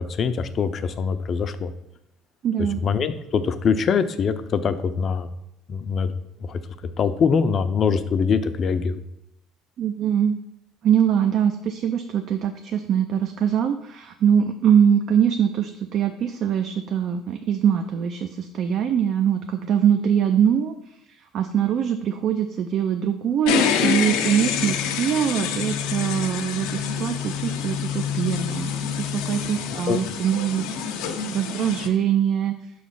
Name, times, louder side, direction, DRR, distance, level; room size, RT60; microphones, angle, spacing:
voice 1, 0.0-1.7 2.8-5.3 5.7-6.1 6.5-6.6 7.0-9.0 29.9-30.0, left 6 dB, 40° left, 10 dB, 0.5 m, -23 dB
voice 2, 2.4-2.8 9.8-10.3 10.8-20.7 21.1-30.7 31.3-32.5, right 8 dB, 55° right, 7 dB, 0.4 m, -23 dB
sound 1, 23.5-31.9, left 8 dB, 90° left, 0.6 m, -27 dB
5.8 x 3.1 x 5.5 m, 0.85 s
cardioid pair, 120°, 0 cm